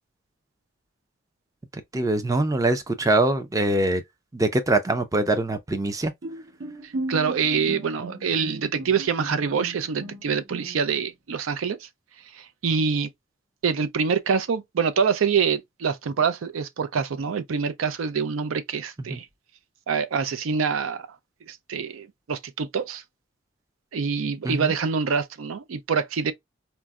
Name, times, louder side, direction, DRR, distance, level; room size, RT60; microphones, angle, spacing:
voice 1, 1.9-4.0 4.3-6.1 19.1-19.2 24.4-24.7, right 2 dB, 15° right, 0.3 m, -23 dB
Bowed string instrument, 6.2-11.1, right 2 dB, 65° right, 1.1 m, -36 dB
voice 2, 6.8-11.9 12.3-13.1 13.6-19.3 19.9-21.1 21.5-23.0 23.9-26.3, right 6 dB, 85° right, 0.4 m, -25 dB
4.4 x 2.0 x 2.3 m
head